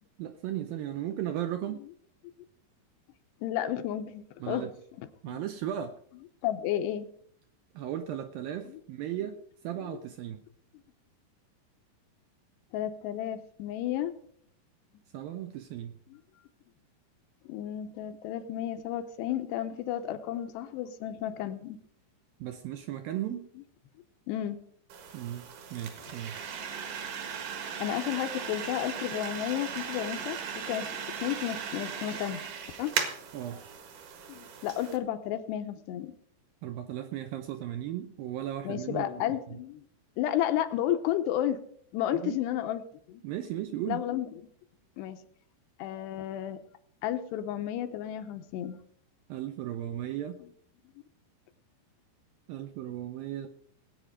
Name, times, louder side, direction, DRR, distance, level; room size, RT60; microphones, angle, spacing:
voice 1, 0.2-1.8 4.4-4.7 5.2-6.0 7.7-10.4 15.1-16.0 22.4-23.5 25.1-26.4 33.3-33.6 36.6-39.1 39.5-39.6 42.1-42.4 43.2-44.0 49.3-50.4 52.5-53.5, right 11 dB, 80° right, 7 dB, 2.1 m, -36 dB
voice 2, 3.4-4.7 5.0-5.4 6.4-7.1 8.7-8.8 9.8-10.0 12.7-14.1 17.5-21.8 24.3-24.7 26.6-26.7 27.8-30.9 31.2-32.4 32.8-32.9 34.3-36.1 38.6-39.8 40.2-41.6 41.9-42.8 43.1-43.2 43.9-44.3 45.0-45.2 45.8-46.6 47.0-48.8, left 11 dB, 85° left, 8 dB, 3.0 m, -32 dB
sound 1, 24.9-35.0, right 7 dB, 60° right, 2.8 m, -37 dB
19.0 x 8.5 x 5.0 m, 0.63 s
omnidirectional pair, 4.9 m